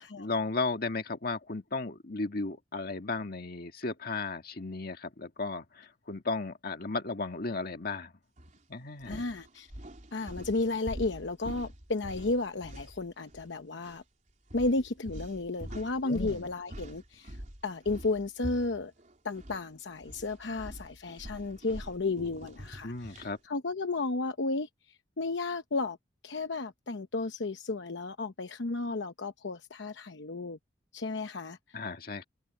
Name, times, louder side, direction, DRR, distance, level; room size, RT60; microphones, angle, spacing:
voice 1, 0.0-8.1 8.7-9.3 16.0-16.5 22.8-23.4 31.7-32.2, left 3 dB, 55° left, 1.8 m, -35 dB
sound 1, 8.4-8.6 9.0-13.5 13.8-14.0 14.5-19.6 19.9-23.4, equal, 45° right, 3.9 m, -45 dB
voice 2, 9.0-9.7 10.1-14.0 14.5-17.4 17.6-18.9 19.2-24.7 25.2-26.0 26.2-30.6 30.9-31.6, left 3 dB, 80° left, 0.9 m, -33 dB
head